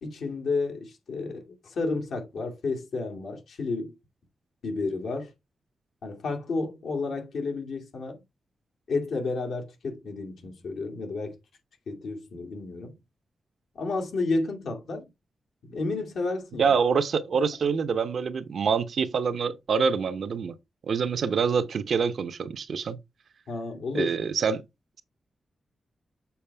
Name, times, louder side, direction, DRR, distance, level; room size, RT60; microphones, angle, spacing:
voice 1, 0.0-4.0 4.6-5.3 6.0-8.2 8.9-11.4 11.9-13.0 13.7-15.0 15.6-16.7 23.5-24.2, left 3 dB, 80° left, 2.3 m, -31 dB
voice 2, 16.6-20.5 20.8-23.0 23.9-24.6, right 6 dB, 65° right, 0.8 m, -26 dB
7.1 x 4.8 x 3.4 m
wide cardioid pair, 115°, 0 cm